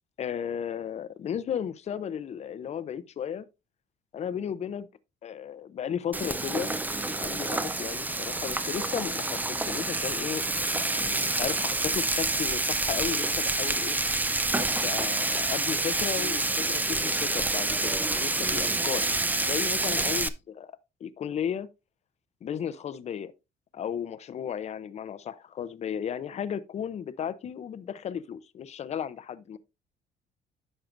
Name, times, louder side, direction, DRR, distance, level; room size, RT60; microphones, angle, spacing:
voice 1, 0.2-3.4 4.1-4.9 5.2-6.8 7.2-14.0 14.5-19.1 19.4-20.7 21.0-21.7 22.4-23.3 23.7-29.6, left 8 dB, 40° left, 0.6 m, -34 dB
Frying (food), 6.1-20.3, right 2 dB, 10° right, 0.5 m, -28 dB
sound 1, 6.9-10.2 10.5-11.5 11.7-13.2, right 2 dB, 75° right, 5.7 m, -52 dB
10.5 x 6.6 x 2.6 m
cardioid pair, 110°, 17 cm